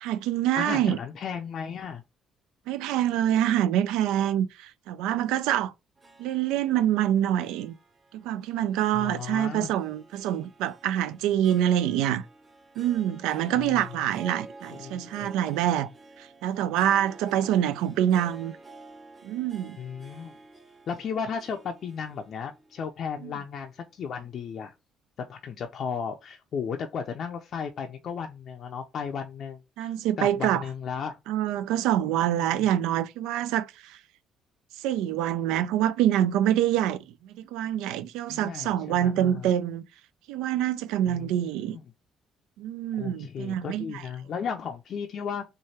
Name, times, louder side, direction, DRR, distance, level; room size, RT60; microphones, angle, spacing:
voice 1, 0.0-1.0 2.7-5.7 6.2-7.8 8.1-12.3 12.8-15.9 16.2-18.5 19.2-19.8 23.2-23.3 29.8-30.6 31.3-34.0 34.8-39.8 40.3-41.8 42.6-44.0, right 11 dB, 85° right, 0.3 m, -26 dB
voice 2, 0.5-2.0 8.9-9.7 13.5-13.8 14.2-14.3 14.7-15.3 19.8-20.3 20.9-24.7 25.3-31.2 32.4-32.7 38.3-39.5 41.1-41.8 42.9-45.4, left 6 dB, 60° left, 0.5 m, -35 dB
Harp, 6.0-24.4, right 3 dB, 30° right, 1.0 m, -50 dB
3.2 x 2.2 x 4.2 m
supercardioid pair, 80°, 0 cm